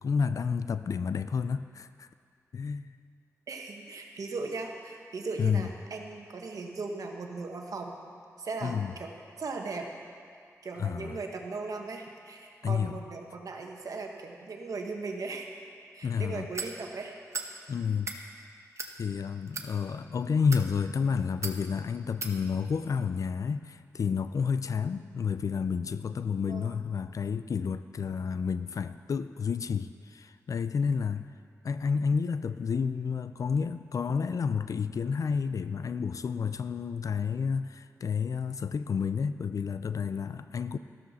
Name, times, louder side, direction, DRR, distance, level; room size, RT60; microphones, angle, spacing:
voice 1, 0.0-2.1 2.5-3.0 5.4-5.7 8.6-8.9 10.8-11.2 12.6-13.0 16.0-16.5 17.7-18.1 19.0-31.3 31.6-40.8, left 6 dB, 70° left, 12 dB, 0.4 m, -30 dB
voice 2, 3.5-8.0 8.4-9.9 10.6-15.5 15.9-17.2 26.5-26.8 28.2-28.3, right 3 dB, 75° right, 2 dB, 1.3 m, -38 dB
sound 1, 16.5-16.7 17.3-17.5 17.9-18.2 18.8-18.9 19.5-19.7 20.4-20.7 21.4-21.6 22.2-22.3, right 4 dB, 50° right, 1.0 m, -36 dB
13.5 x 13.0 x 4.2 m, 2.2 s
cardioid pair, 70°, 6 cm